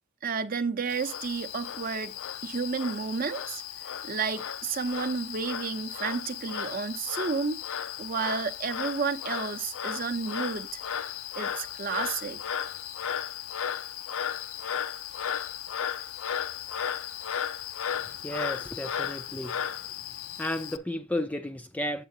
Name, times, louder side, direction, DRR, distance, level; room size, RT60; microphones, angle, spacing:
voice 1, 0.2-2.1 2.4-3.6 4.0-10.8 11.4-12.4, right 5 dB, 40° right, 0.6 m, -31 dB
Frog, 0.9-20.8, left 9 dB, 80° left, 0.5 m, -35 dB
voice 2, 18.1-19.6 19.9-22.1, left 1 dB, 5° left, 0.3 m, -34 dB
8.2 x 7.3 x 2.7 m
head